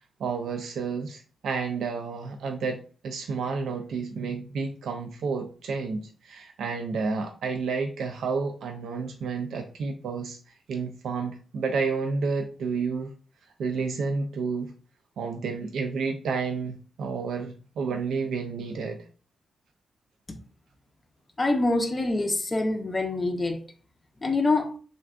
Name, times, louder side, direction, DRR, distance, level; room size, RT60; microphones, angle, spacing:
voice 1, 0.2-10.4 10.7-13.1 13.6-14.7 15.2-19.0, right 4 dB, 90° right, 0.3 m, -30 dB
voice 2, 21.4-23.6 24.2-24.8, left 2 dB, 20° left, 0.4 m, -25 dB
3.4 x 2.5 x 2.3 m
wide cardioid pair, 145°, 0 cm